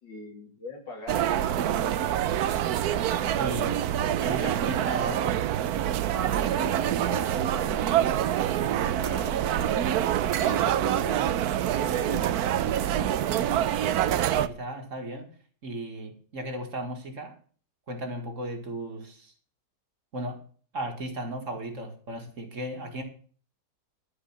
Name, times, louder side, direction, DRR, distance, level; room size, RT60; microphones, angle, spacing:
voice 1, 0.0-2.5 6.1-9.5 10.4-11.5 11.8-13.5, left 3 dB, 90° left, 2 dB, 3.5 m, -42 dB
sound 1, 1.1-14.5, right 11 dB, 65° right, 1.1 m, -26 dB
voice 2, 3.3-3.9 4.2-5.4 14.4-15.3 15.6-17.3 17.9-19.3 20.1-20.4 20.7-23.0, right 1 dB, 45° right, 5 dB, 2.1 m, -35 dB
12.5 x 4.9 x 8.6 m, 0.43 s
omnidirectional pair, 1.9 m